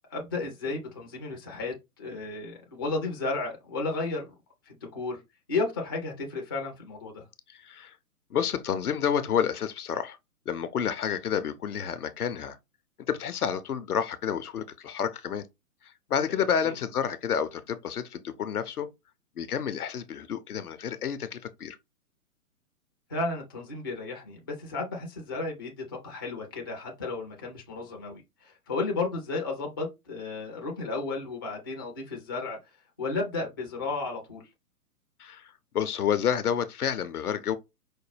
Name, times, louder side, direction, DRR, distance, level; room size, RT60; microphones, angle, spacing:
voice 1, 0.1-4.3 4.7-5.2 5.5-7.2 16.3-16.7 23.1-32.6 33.0-34.5, left 3 dB, 15° left, 0.4 m, -33 dB
voice 2, 7.5-8.0 8.3-10.2 10.5-12.6 13.1-15.4 16.1-18.9 19.4-21.8 35.2-37.6, left 8 dB, 75° left, 0.7 m, -29 dB
5.0 x 2.2 x 3.2 m
figure-of-eight pair, 120°, 46 cm